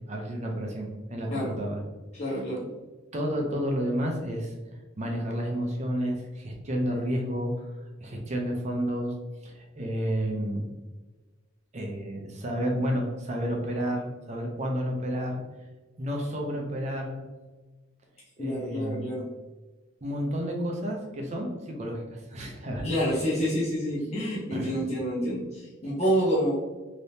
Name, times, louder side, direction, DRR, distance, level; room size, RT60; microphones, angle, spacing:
voice 1, 0.1-1.8 2.3-2.4 3.1-4.5 5.0-7.7 8.0-9.1 9.4-10.7 11.7-15.4 16.0-17.2 18.4-19.1 20.0-22.9 24.5-24.7, equal, 35° right, 1 dB, 0.6 m, -31 dB
voice 2, 2.1-2.7 18.4-19.2 22.8-26.5, equal, 35° left, -8 dB, 0.7 m, -28 dB
3.4 x 2.9 x 2.7 m, 1.2 s
head